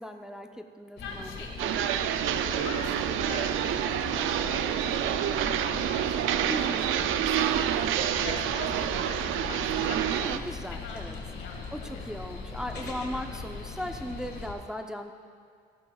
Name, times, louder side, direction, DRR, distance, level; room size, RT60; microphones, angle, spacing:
voice 1, 0.0-1.8 6.5-6.9 10.1-11.2 11.7-15.1, equal, 5° right, 5 dB, 0.6 m, -38 dB
voice 2, 1.0-1.5 2.5-3.5 3.8-4.7 4.9-6.4 6.9-9.2 9.5-10.2 10.7-12.0 13.1-13.3, left 4 dB, 80° left, 1 dB, 1.7 m, -43 dB
sound 1, 1.0-14.5, left 4 dB, 55° left, 1.8 m, -39 dB
sound 2, 1.6-10.4, right 10 dB, 80° right, 0.5 m, -28 dB
14.5 x 11.5 x 2.3 m, 2.1 s
cardioid pair, 90°, 20 cm